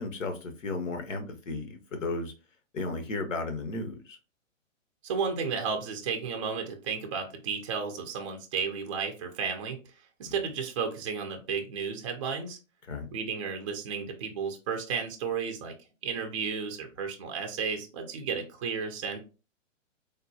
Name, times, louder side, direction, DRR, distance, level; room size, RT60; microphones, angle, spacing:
voice 1, 0.0-2.3 2.7-4.2 10.2-10.3 12.9-13.1, left 3 dB, 75° left, 6 dB, 0.9 m, -34 dB
voice 2, 5.0-9.8 10.2-12.6 13.1-15.7 16.0-19.2, right 6 dB, 25° right, 4 dB, 0.5 m, -33 dB
3.6 x 2.2 x 2.6 m, 0.32 s
hypercardioid pair, 135°, 39 cm